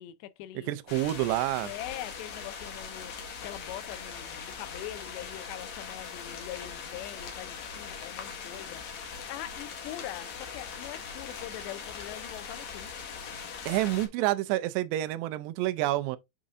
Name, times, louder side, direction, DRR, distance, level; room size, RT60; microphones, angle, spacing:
voice 1, 0.0-0.7 1.6-3.2 3.4-12.9, left 13 dB, 85° left, 2.9 m, -43 dB
voice 2, 0.7-1.7 13.7-16.2, right 15 dB, 85° right, 2.7 m, -28 dB
sound 1, 0.9-14.1, left 6 dB, 55° left, 2.1 m, -41 dB
8.5 x 5.0 x 2.5 m
omnidirectional pair, 4.9 m